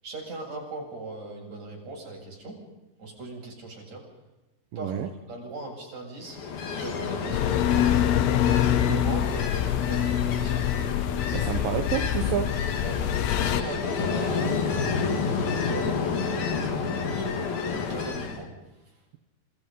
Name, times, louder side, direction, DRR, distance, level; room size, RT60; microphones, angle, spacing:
voice 1, 0.0-2.6 3.0-4.0 4.8-6.4 6.6-7.6 8.3-10.7 11.2-11.7 12.8-13.0 13.4-14.6 15.2-18.5, right 2 dB, 45° right, -1 dB, 9.4 m, -39 dB
voice 2, 4.7-5.1 11.3-12.6, right 9 dB, 65° right, 8 dB, 2.8 m, -29 dB
Ocean, 6.2-18.4, left 5 dB, 65° left, 4.5 m, -30 dB
sound 1, 7.3-13.6, left 11 dB, 80° left, 3.0 m, -25 dB
28.5 x 28.5 x 5.6 m, 0.99 s
omnidirectional pair, 4.6 m